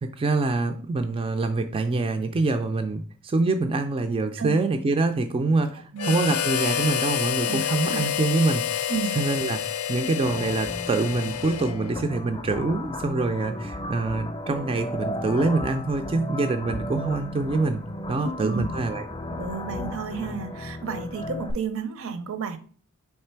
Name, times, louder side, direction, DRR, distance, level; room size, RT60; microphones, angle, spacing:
voice 1, 0.0-17.8 18.1-19.0, right 3 dB, 25° right, 0.3 m, -25 dB
voice 2, 5.9-6.2 7.5-8.1 8.9-9.1 18.1-18.6 19.3-22.6, right 5 dB, 65° right, 0.6 m, -32 dB
Harmonica, 6.0-12.0, left 9 dB, 70° left, 0.4 m, -28 dB
sound 1, 10.2-21.5, left 1 dB, 25° left, 0.6 m, -35 dB
3.6 x 3.3 x 4.4 m
head